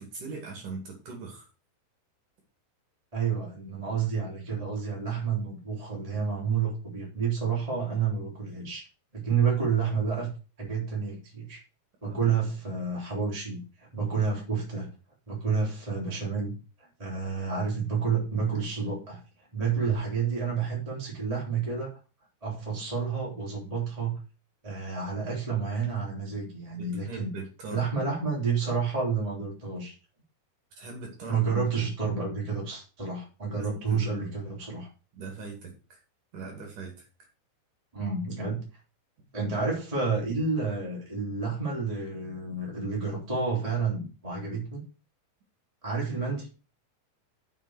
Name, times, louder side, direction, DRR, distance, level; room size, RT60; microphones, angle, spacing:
voice 1, 0.0-1.5 12.0-12.3 26.8-27.9 30.8-31.5 33.5-34.3 35.1-36.0 36.3-37.1, right 4 dB, 55° right, 2 dB, 3.7 m, -40 dB
voice 2, 3.1-8.9 9.1-10.3 10.6-11.6 12.0-14.9 15.3-19.2 19.5-21.9 22.4-24.2 24.6-27.3 27.7-29.9 31.3-34.9 37.9-38.6 39.3-44.8 45.8-46.5, right 5 dB, 10° right, -4 dB, 3.2 m, -30 dB
7.4 x 6.7 x 6.5 m, 0.34 s
omnidirectional pair, 4.8 m